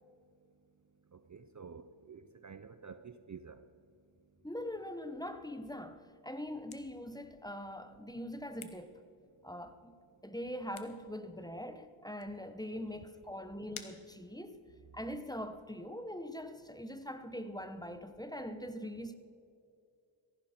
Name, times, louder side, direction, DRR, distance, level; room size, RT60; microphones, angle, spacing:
voice 1, 1.1-3.6, right 6 dB, 35° right, 0.6 m, -50 dB
voice 2, 4.4-9.0 9.4-9.9 10.2-14.6 14.9-19.2, equal, 10° left, 1.0 m, -42 dB
sound 1, 6.2-14.9, left 7 dB, 80° left, 1.2 m, -57 dB
17.5 x 14.5 x 4.4 m
cardioid pair, 45°, 48 cm